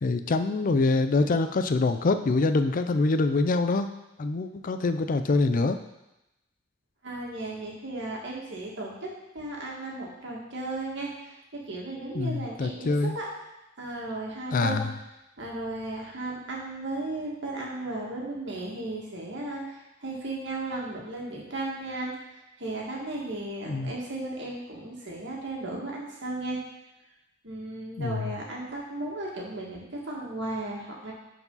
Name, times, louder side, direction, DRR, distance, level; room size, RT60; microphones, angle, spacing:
voice 1, 0.0-3.9 4.2-5.8 12.1-13.2 14.5-14.9 23.7-23.9 28.0-28.3, left 3 dB, 45° left, 9 dB, 0.4 m, -25 dB
voice 2, 7.0-9.1 9.3-11.4 11.7-12.9 13.1-13.2 13.8-14.9 15.4-22.1 22.6-26.6 27.4-31.1, right 2 dB, 65° right, -3 dB, 2.0 m, -35 dB
11.0 x 4.8 x 4.0 m, 0.94 s
head